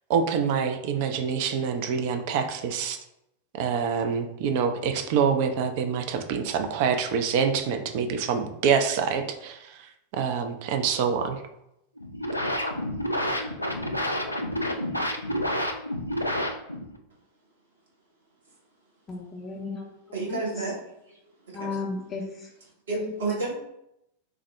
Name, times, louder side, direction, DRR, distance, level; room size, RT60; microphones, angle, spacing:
voice 1, 0.1-3.0 3.5-9.9 10.2-11.4, right 6 dB, 50° right, 6 dB, 0.4 m, -26 dB
sound 1, 12.0-17.0, equal, 85° left, 0.3 m, -29 dB
voice 2, 19.1-19.9 20.2-20.7 21.5-22.5 22.9-23.3, left 4 dB, 20° left, -3 dB, 0.5 m, -35 dB
voice 3, 20.1-21.2 21.5-21.7 22.9-23.6, right 3 dB, 65° right, -3 dB, 1.1 m, -31 dB
3.4 x 2.0 x 3.1 m, 0.82 s
figure-of-eight pair, 90°, 0 cm